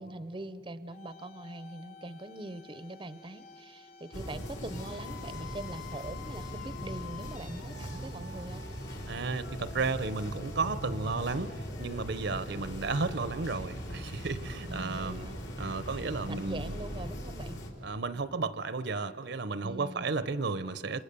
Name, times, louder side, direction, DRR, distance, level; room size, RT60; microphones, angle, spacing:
voice 1, 0.0-8.7 14.7-15.4 16.3-17.6 19.6-20.1, right 2 dB, 25° right, 14 dB, 0.7 m, -42 dB
sound 1, 0.9-13.7, left 5 dB, 50° left, 1.3 m, -50 dB
sound 2, 4.1-17.7, equal, 70° left, 3.5 m, -40 dB
voice 2, 9.1-15.3 15.6-16.6 17.8-21.0, right 4 dB, 65° right, 15 dB, 0.8 m, -33 dB
27.0 x 27.0 x 6.9 m, 2.7 s
head